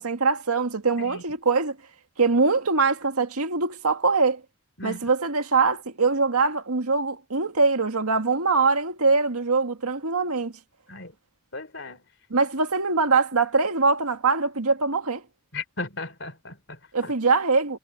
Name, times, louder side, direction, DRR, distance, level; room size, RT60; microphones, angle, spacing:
voice 1, 0.0-1.8 2.2-4.4 4.8-10.5 12.3-15.2 16.9-17.8, right 4 dB, 90° right, 2.0 m, -23 dB
voice 2, 11.5-12.0 15.5-17.1, left 3 dB, 55° left, 3.9 m, -36 dB
head